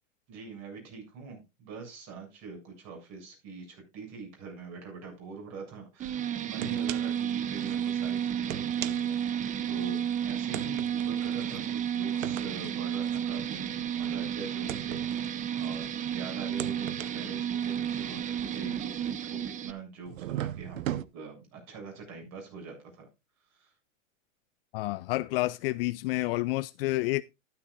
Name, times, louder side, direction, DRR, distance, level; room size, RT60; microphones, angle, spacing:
voice 1, 0.3-23.1 23.5-23.7, right 4 dB, 45° right, 7.3 m, -44 dB
sound 1, 6.0-19.7, right 9 dB, 20° right, 0.6 m, -32 dB
sound 2, 6.0-6.2 6.6-7.3 7.6-7.7 8.3-9.9 10.5-16.0 16.4-19.5 20.1-21.0, right 13 dB, 80° right, 0.8 m, -39 dB
voice 2, 24.7-27.2, left 20 dB, 45° left, 0.4 m, -29 dB
12.5 x 11.5 x 2.5 m
hypercardioid pair, 125°, 39 cm